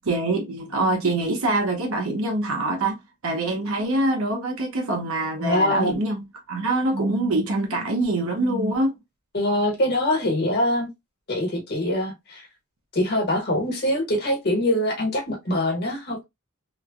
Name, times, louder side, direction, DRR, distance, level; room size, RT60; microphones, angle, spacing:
voice 1, 0.0-3.0 3.2-6.2 6.5-9.0, right 2 dB, 70° right, 0.7 m, -24 dB
voice 2, 5.4-5.9 9.3-10.9 11.3-12.5 12.9-16.2, left 1 dB, 50° left, 1.1 m, -23 dB
3.1 x 2.1 x 2.3 m
head